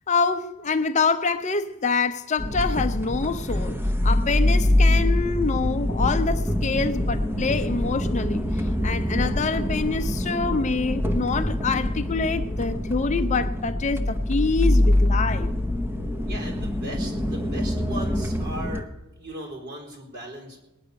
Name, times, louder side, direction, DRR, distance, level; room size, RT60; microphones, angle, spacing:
voice 1, 0.1-15.5, left 4 dB, 35° left, 0.6 m, -26 dB
sound 1, 2.4-18.8, left 1 dB, 10° right, 0.8 m, -24 dB
voice 2, 16.2-18.9 19.2-20.6, right 1 dB, 50° right, 4.5 m, -38 dB
19.5 x 9.9 x 6.8 m
head